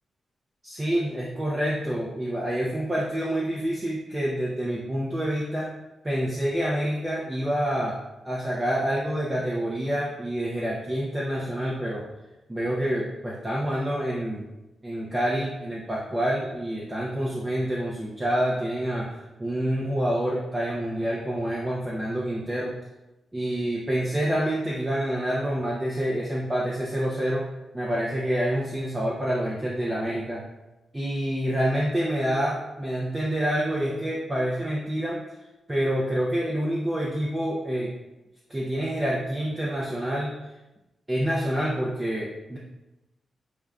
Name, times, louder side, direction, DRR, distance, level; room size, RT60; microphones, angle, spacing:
voice 1, 0.6-5.7 6.0-7.9 8.2-12.0 12.5-14.4 14.8-22.8 23.3-27.5 27.7-30.4 30.9-35.2 35.7-37.9 38.5-40.3 41.1-42.6, equal, 15° right, -4 dB, 0.5 m, -27 dB
6.3 x 2.2 x 2.4 m, 1.0 s
wide cardioid pair, 125°, 0 cm